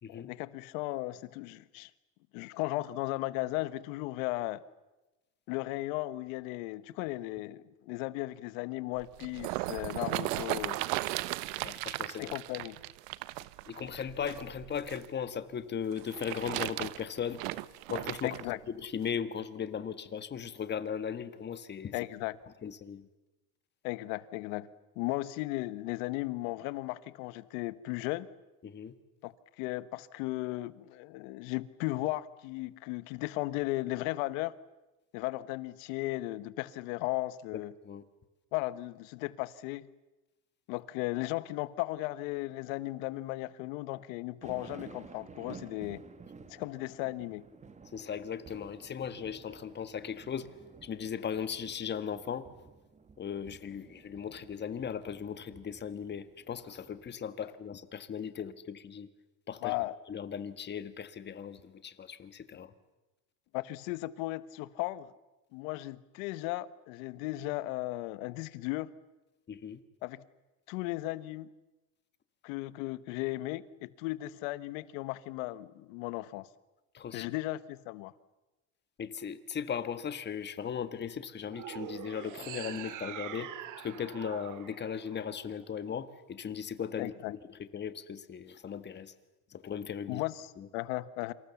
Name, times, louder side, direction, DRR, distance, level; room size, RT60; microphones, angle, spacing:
voice 1, 0.1-1.9 2.3-4.6 5.5-10.8 12.2-12.7 18.2-18.6 21.9-22.3 23.8-24.7 25.0-28.3 29.2-34.5 35.1-37.7 38.5-39.9 40.7-46.0 46.5-47.4 59.6-59.9 63.5-65.1 65.5-68.9 70.0-70.2 70.7-71.5 72.4-76.5 77.1-78.1 87.0-87.3 90.1-90.5 90.7-91.3, left 18 dB, 75° left, 16 dB, 1.3 m, -36 dB
sound 1, 9.0-15.1 15.9-18.4 19.1-19.2, right 19 dB, 75° right, 1.0 m, -36 dB
voice 2, 11.6-12.3 13.7-17.4 17.9-18.4 18.7-21.9 22.6-23.1 28.6-28.9 37.5-38.0 47.9-50.5 50.8-52.5 53.2-59.1 59.5-59.7 60.1-62.7 69.5-69.8 76.9-77.3 79.0-83.5 83.8-89.1 89.5-90.2 90.6-90.7, left 7 dB, 25° left, 12 dB, 1.6 m, -38 dB
sound 2, 44.4-57.1, right 5 dB, 15° right, 1.4 m, -53 dB
sound 3, 81.5-85.8, right 11 dB, 50° right, 2.2 m, -44 dB
27.5 x 26.5 x 7.2 m, 1.1 s
supercardioid pair, 130°, 40 cm